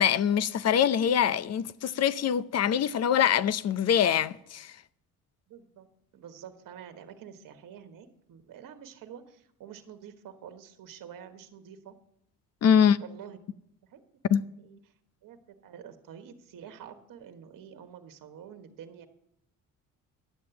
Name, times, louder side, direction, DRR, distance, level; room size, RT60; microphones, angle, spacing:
voice 1, 0.0-4.7 12.6-13.0 14.3-14.4, left 8 dB, 45° left, 0.6 m, -24 dB
voice 2, 5.5-5.9 6.1-11.9 13.0-13.4 13.9-14.0 14.6-14.8 15.2-19.1, right 8 dB, 65° right, 1.5 m, -47 dB
11.0 x 7.6 x 7.0 m
cardioid pair, 90°, 36 cm